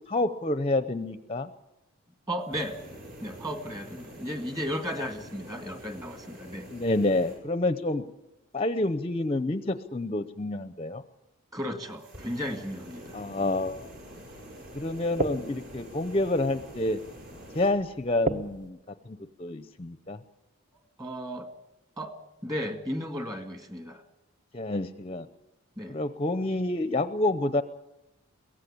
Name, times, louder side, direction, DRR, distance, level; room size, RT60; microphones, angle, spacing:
voice 1, 0.1-1.5 6.7-8.0 8.5-11.0 13.1-13.9 14.7-17.0 17.5-18.8 19.1-20.2 24.5-25.3 25.9-27.6, left 2 dB, 25° left, 12 dB, 0.7 m, -28 dB
voice 2, 2.3-2.8 3.2-6.7 11.5-13.2 21.0-21.5 22.0-22.1 22.4-24.0 25.8-26.0, equal, 15° right, 7 dB, 1.9 m, -34 dB
sound 1, 2.4-7.4 11.9-17.7, equal, 55° right, 6.8 m, -46 dB
sound 2, 13.7-18.7, right 1 dB, 35° right, 1.2 m, -37 dB
23.0 x 17.0 x 8.5 m, 0.95 s
head